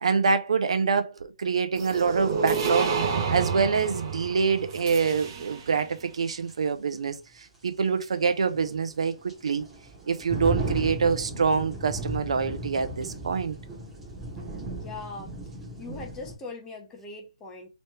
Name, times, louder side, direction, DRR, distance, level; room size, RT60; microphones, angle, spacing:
voice 1, 0.0-2.9 3.3-9.7 10.1-13.6, right 5 dB, 65° right, 0.6 m, -26 dB
sound 1, 1.8-5.8, right 5 dB, 35° right, 0.9 m, -30 dB
sound 2, 5.9-6.0 6.5-6.6 8.1-16.3, right 2 dB, 10° right, 1.1 m, -36 dB
voice 2, 14.5-15.4 15.8-17.7, left 3 dB, 15° left, 0.8 m, -41 dB
3.2 x 3.1 x 3.0 m
hypercardioid pair, 145°, 3 cm